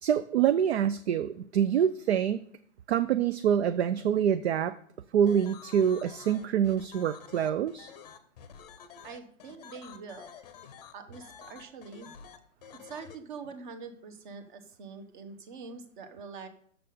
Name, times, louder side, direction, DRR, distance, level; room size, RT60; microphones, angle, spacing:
voice 1, 0.0-2.5 2.9-4.8 5.1-7.9, right 9 dB, 55° right, 12 dB, 0.4 m, -26 dB
sound 1, 5.3-13.1, left 7 dB, 30° left, 0.7 m, -49 dB
voice 2, 9.0-10.3 10.9-12.1 12.8-16.5, right 5 dB, 35° right, 7 dB, 1.1 m, -44 dB
6.8 x 5.9 x 6.7 m, 0.64 s
hypercardioid pair, 150°, 40 cm